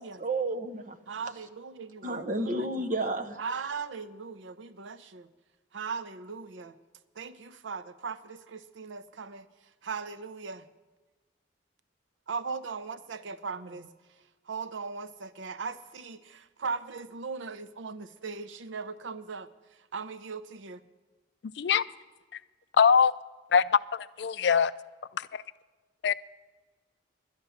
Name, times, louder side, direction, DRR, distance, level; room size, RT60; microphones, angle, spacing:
voice 1, 0.0-1.0 2.0-3.4, right 2 dB, 45° right, 0.8 m, -31 dB
voice 2, 1.1-2.7 3.4-5.3 5.7-6.7 7.2-9.5 9.8-10.6 12.3-13.9 14.5-19.5 19.9-20.8, right 5 dB, 85° right, 0.6 m, -38 dB
voice 3, 22.8-23.1 23.5-23.6 23.9-24.7 25.2-25.4 26.0-26.1, left 6 dB, 60° left, 0.4 m, -22 dB
11.5 x 10.0 x 7.0 m
head